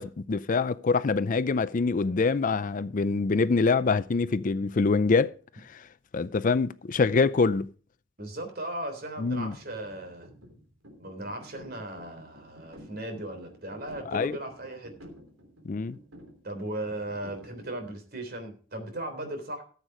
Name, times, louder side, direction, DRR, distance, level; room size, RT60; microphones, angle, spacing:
voice 1, 0.0-5.3 5.7-5.8 6.1-7.7 9.2-9.6 14.1-14.4 15.7-16.0, left 4 dB, 40° left, 0.4 m, -25 dB
voice 2, 8.2-10.3 11.0-15.0 16.4-19.6, right 1 dB, 50° right, 3.4 m, -37 dB
sound 1, 9.3-17.9, equal, 90° right, 3.5 m, -51 dB
14.0 x 8.1 x 4.9 m
head